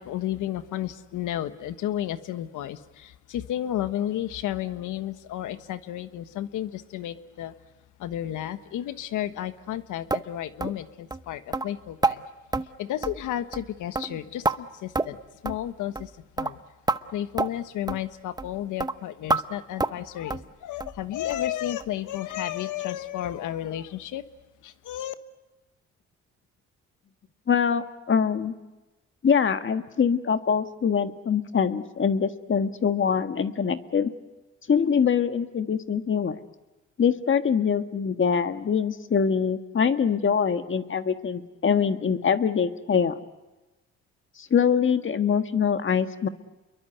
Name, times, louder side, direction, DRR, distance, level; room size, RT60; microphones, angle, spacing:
voice 1, 0.0-7.5 8.0-12.2 12.8-15.2 15.4-16.1 16.4-16.6 17.1-24.2 24.6-25.1, left 12 dB, 85° left, 11 dB, 1.3 m, -32 dB
sound 1, 10.1-10.3 10.6-10.8 11.1-11.2 11.5-11.7 12.0-12.2 12.5-12.7 13.0-13.3 13.5-13.7 14.0-14.6 15.0-15.2 15.5-15.6 16.0-16.1 16.4-16.5 16.9-17.0 17.4-17.5 17.9-18.0 18.4-18.5 18.8-18.9 19.3-19.4 19.8-20.0 20.3-20.5 20.8-21.0 21.3-21.4 21.8-21.9 22.3-22.4, right 3 dB, 15° right, 0.9 m, -27 dB
voice 2, 27.5-28.5 29.2-34.1 34.7-36.4 37.0-43.2 44.4-46.3, left 7 dB, 40° left, 9 dB, 1.6 m, -24 dB
29.0 x 22.5 x 8.1 m, 1.1 s
cardioid pair, 90°, 30 cm